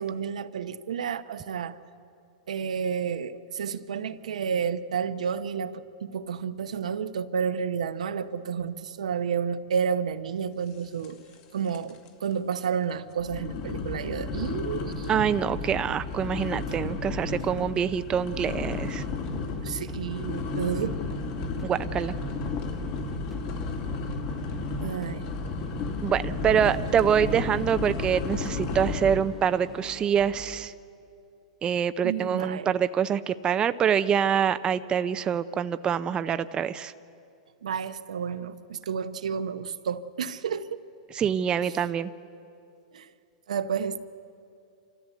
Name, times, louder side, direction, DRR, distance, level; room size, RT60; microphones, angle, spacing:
voice 1, 0.0-1.7 2.5-11.2 11.5-15.1 19.6-21.0 24.8-25.3 26.5-26.8 32.0-32.7 37.6-40.8 42.9-43.1 43.5-44.0, right 7 dB, 85° right, 11 dB, 0.9 m, -31 dB
sound 1, 11.0-11.4 11.7-12.1 12.5-12.6 13.2-29.4, left 3 dB, 50° left, 2.5 m, -33 dB
voice 2, 15.1-19.0 21.6-22.1 26.0-30.7 31.6-36.9 41.1-42.1, right 8 dB, 25° right, 12 dB, 0.5 m, -25 dB
sound 2, 16.6-30.7, right 2 dB, 5° right, 1.1 m, -46 dB
27.0 x 14.0 x 8.2 m, 2.6 s
hypercardioid pair, 120°, 4 cm